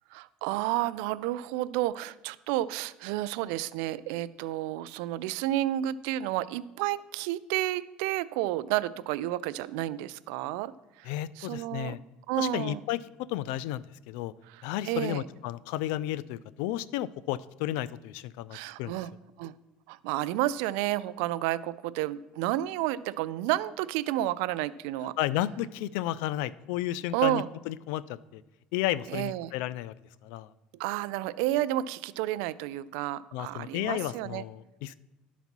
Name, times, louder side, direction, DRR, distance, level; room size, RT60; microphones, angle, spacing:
voice 1, 0.1-10.7 11.0-11.1 11.4-11.9 12.3-12.8 14.5-15.3 18.5-19.1 19.4-19.5 19.9-25.1 27.1-27.5 29.1-29.5 30.8-34.4, right 14 dB, 85° right, 16 dB, 0.4 m, -31 dB
voice 2, 11.0-12.0 12.4-13.0 13.3-14.3 14.6-19.0 25.2-28.4 28.7-29.9 30.2-30.5 33.3-34.9, left 14 dB, 80° left, 19 dB, 0.3 m, -33 dB
11.0 x 4.1 x 6.0 m, 1.0 s
cardioid pair, 125°, 3 cm